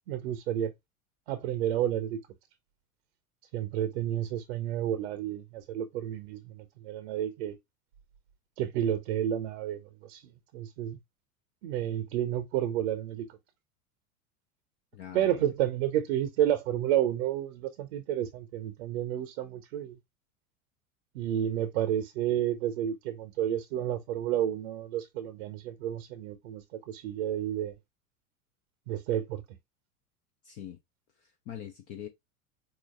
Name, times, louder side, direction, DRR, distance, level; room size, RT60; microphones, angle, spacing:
voice 1, 0.1-0.7 1.3-2.2 3.5-7.6 8.6-10.2 10.5-11.0 11.6-13.3 15.1-20.0 21.1-27.7 28.9-29.4, right 11 dB, 50° right, 0.7 m, -31 dB
voice 2, 14.9-15.5 30.4-30.8 31.2-32.1, left 10 dB, 20° left, 0.3 m, -43 dB
4.8 x 3.8 x 2.2 m
figure-of-eight pair, 85°, 42 cm